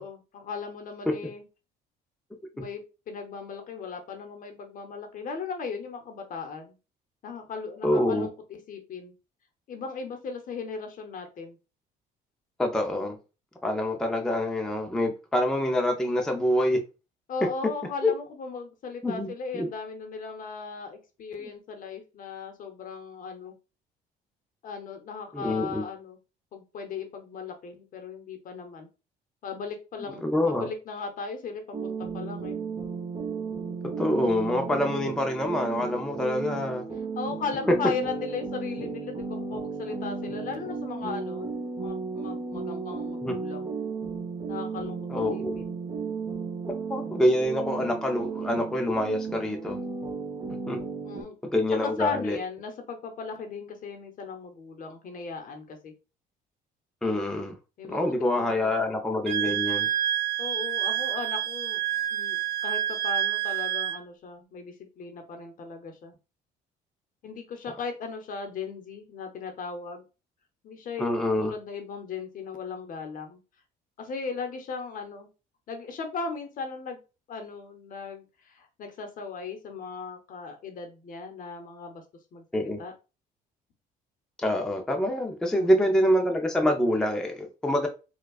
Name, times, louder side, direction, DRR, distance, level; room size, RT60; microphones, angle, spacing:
voice 1, 0.0-1.4 2.5-6.8 7.2-9.2 9.7-11.6 17.3-23.5 24.6-26.2 26.5-28.9 29.4-30.2 30.5-32.6 37.2-43.7 44.5-45.0 45.3-45.7 51.0-51.3 51.7-55.9 57.8-58.8 60.4-61.8 62.1-66.1 67.2-70.0 70.6-73.4 74.0-75.3 75.7-77.0 77.3-82.0 82.3-82.9 85.5-85.9, left 5 dB, 55° left, 0.9 m, -37 dB
voice 2, 7.8-8.3 12.6-13.2 13.6-16.8 18.0-18.1 19.0-19.7 25.3-25.8 30.2-30.7 34.0-36.8 43.2-43.3 45.1-45.6 46.9-49.8 50.5-50.8 51.5-52.4 57.0-57.6 57.9-59.9 71.0-71.5 82.5-82.8 84.4-87.9, left 1 dB, 5° left, 0.5 m, -26 dB
sound 1, 31.7-51.2, right 5 dB, 25° right, 1.0 m, -34 dB
Wind instrument woodwind instrument, 59.3-64.0, right 12 dB, 75° right, 0.4 m, -28 dB
4.5 x 2.3 x 2.4 m
cardioid pair, 110°, 17 cm